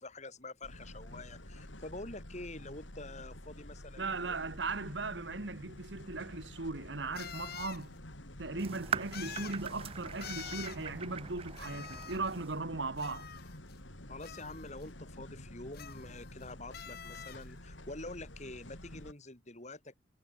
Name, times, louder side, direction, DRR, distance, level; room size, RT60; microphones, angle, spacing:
voice 1, 0.0-4.5 14.1-19.9, left 2 dB, 35° left, 3.1 m, -46 dB
sound 1, 0.6-19.1, left 1 dB, 75° left, 5.2 m, -49 dB
voice 2, 4.0-8.0 8.4-13.3, right 3 dB, 65° right, 1.5 m, -38 dB
sound 2, 5.8-5.9 7.2-7.8 9.1-9.6 10.2-10.8 11.6-12.4 13.0-13.8 14.2-14.8 15.7-16.4 16.7-17.4, left 8 dB, 50° left, 1.6 m, -46 dB
sound 3, 8.6-12.6, right 7 dB, 30° right, 0.4 m, -42 dB
head